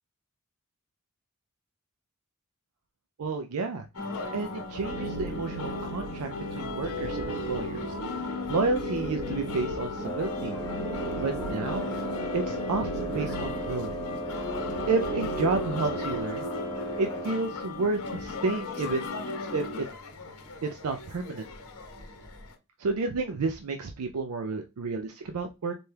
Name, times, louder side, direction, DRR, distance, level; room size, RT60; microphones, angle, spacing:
voice 1, 3.2-3.9 4.3-7.8 8.5-10.6 11.2-11.9 12.3-13.9 14.9-16.5 17.0-19.1 19.5-19.9 20.6-21.5 22.8-25.7, right 3 dB, 80° right, 5 dB, 0.5 m, -31 dB
sound 1, 3.9-22.5, left 3 dB, 80° left, 1.0 m, -36 dB
sound 2, 4.8-16.2, right 2 dB, 55° right, 0.9 m, -38 dB
Wind instrument woodwind instrument, 10.0-17.4, equal, 20° left, 0.4 m, -36 dB
4.2 x 2.3 x 3.2 m, 0.26 s
head